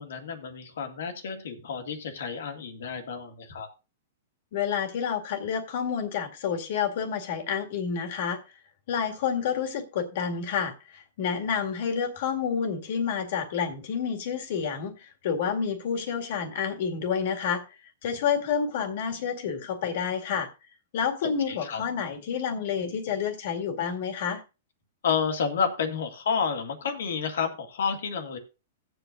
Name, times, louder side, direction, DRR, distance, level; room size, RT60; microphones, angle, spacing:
voice 1, 0.0-3.7 21.2-21.8 25.0-28.4, left 6 dB, 75° left, 2.0 m, -30 dB
voice 2, 4.5-8.4 8.9-17.6 18.0-20.5 20.9-24.4, left 7 dB, 60° left, 2.1 m, -29 dB
17.0 x 7.9 x 2.6 m
hypercardioid pair, 135°, 0 cm